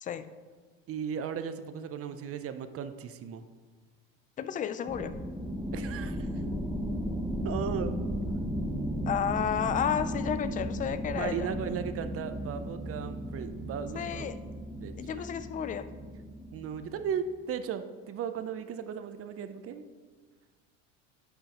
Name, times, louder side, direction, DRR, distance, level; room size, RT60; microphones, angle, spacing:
voice 1, 0.9-3.4 5.7-6.3 7.3-7.9 11.1-14.4 14.8-15.4 16.5-19.9, right 7 dB, 35° right, 10 dB, 0.6 m, -36 dB
voice 2, 4.4-5.2 9.1-11.5 13.9-14.4 15.0-15.9, left 8 dB, 20° left, 12 dB, 0.4 m, -32 dB
sound 1, 4.9-17.1, equal, ahead, 0.7 m, -35 dB
10.5 x 5.6 x 2.9 m, 1.5 s
hypercardioid pair, 85°, 39 cm